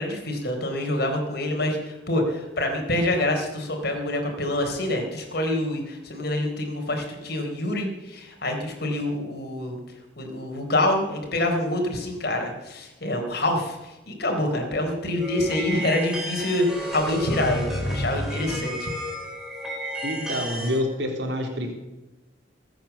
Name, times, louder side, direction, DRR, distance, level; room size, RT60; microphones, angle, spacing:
voice 1, 0.0-9.8 10.2-18.9, left 1 dB, 60° left, 3 dB, 4.1 m, -26 dB
sound 1, 15.2-20.8, equal, 5° right, 4.1 m, -31 dB
voice 2, 20.0-21.7, left 1 dB, 70° right, 1 dB, 3.5 m, -27 dB
21.5 x 9.1 x 7.2 m, 1.0 s
head